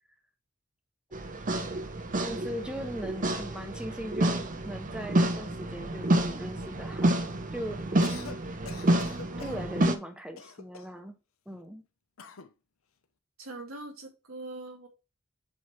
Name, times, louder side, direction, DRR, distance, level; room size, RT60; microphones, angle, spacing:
sound 1, 1.1-9.9, right 1 dB, 40° right, 0.8 m, -29 dB
voice 1, 2.2-8.0 9.4-11.2 11.5-11.8, equal, 5° right, 5 dB, 0.8 m, -39 dB
Cough, 7.9-8.4 8.7-9.6 10.4-11.0 12.2-12.5, left 5 dB, 75° left, 0.8 m, -45 dB
voice 2, 9.3-9.6 13.4-14.9, right 2 dB, 85° right, 2 dB, 2.0 m, -42 dB
7.5 x 3.1 x 4.4 m, 0.28 s
head